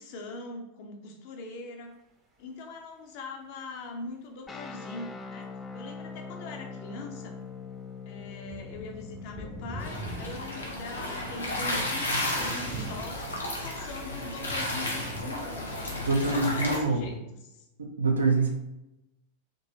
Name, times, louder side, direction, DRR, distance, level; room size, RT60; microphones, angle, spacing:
voice 1, 0.0-2.0 2.4-7.4 8.1-15.9 16.1-17.6, left 3 dB, 45° left, 2 dB, 0.7 m, -42 dB
sound 1, 4.5-13.4, left 5 dB, 15° left, 0.4 m, -44 dB
sound 2, 6.9-7.0 7.4-7.5 8.2-17.2, right 2 dB, 25° right, 0.7 m, -44 dB
sound 3, 9.8-16.8, left 1 dB, 75° left, 0.8 m, -33 dB
voice 2, 16.0-17.1 17.8-18.5, right 3 dB, 75° right, 1 dB, 0.7 m, -25 dB
3.8 x 2.8 x 2.8 m, 0.90 s
figure-of-eight pair, 90°, 0 cm